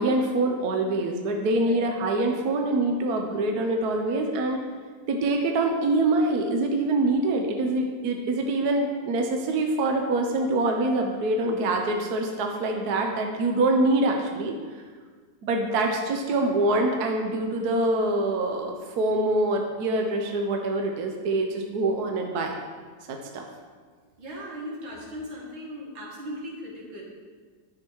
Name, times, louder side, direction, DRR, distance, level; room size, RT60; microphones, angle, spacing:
voice 1, 0.0-4.6 5.1-14.5 15.4-22.5 23.1-23.4, right 2 dB, 60° right, 2 dB, 1.2 m, -25 dB
voice 2, 24.2-27.0, equal, 80° right, -3 dB, 2.6 m, -38 dB
10.5 x 6.2 x 4.6 m, 1.6 s
omnidirectional pair, 2.1 m